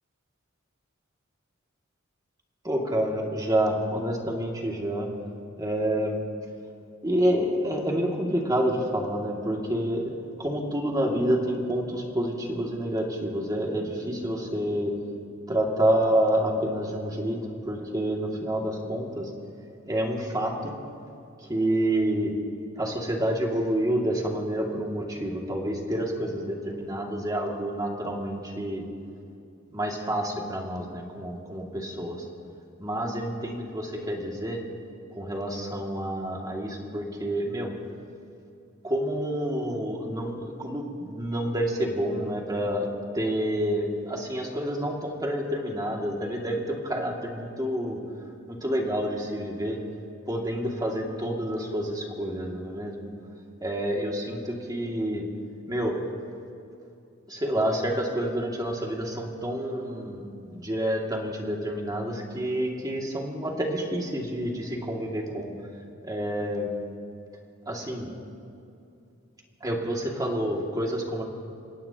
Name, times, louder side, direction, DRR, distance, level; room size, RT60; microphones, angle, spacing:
voice 1, 2.6-5.1 5.6-6.2 7.0-10.1 10.4-14.9 15.5-17.4 17.7-19.3 19.9-20.7 21.5-22.3 22.8-28.8 29.7-32.2 32.8-34.6 35.1-37.7 38.8-42.9 43.1-48.0 48.5-49.8 50.3-53.0 53.6-55.2 55.7-55.9 57.3-65.5 66.0-66.7 67.7-68.1 69.6-71.2, right 1 dB, 20° right, -1 dB, 2.3 m, -28 dB
29.0 x 17.0 x 2.9 m, 2.7 s
head